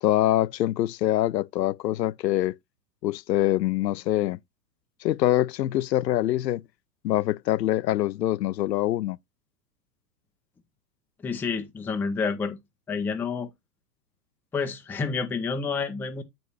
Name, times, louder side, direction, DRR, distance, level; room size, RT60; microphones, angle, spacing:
voice 1, 0.0-2.5 3.0-4.4 5.0-6.6 7.0-9.2, left 14 dB, 75° left, 0.6 m, -24 dB
voice 2, 11.2-12.6 12.9-13.5 14.5-16.2, left 5 dB, 5° left, 0.4 m, -29 dB
8.0 x 5.2 x 3.2 m
hypercardioid pair, 105°, 50 cm